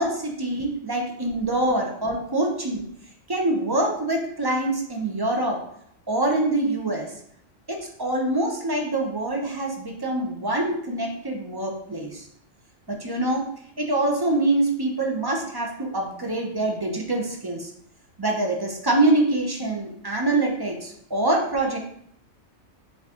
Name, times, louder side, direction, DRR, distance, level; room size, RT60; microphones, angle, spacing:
voice 1, 0.0-2.8 3.3-5.6 6.1-7.1 7.7-12.3 12.9-13.4 13.8-17.7 18.2-21.8, right 2 dB, 30° right, 0 dB, 0.4 m, -25 dB
4.6 x 2.8 x 3.5 m, 0.68 s
omnidirectional pair, 1.3 m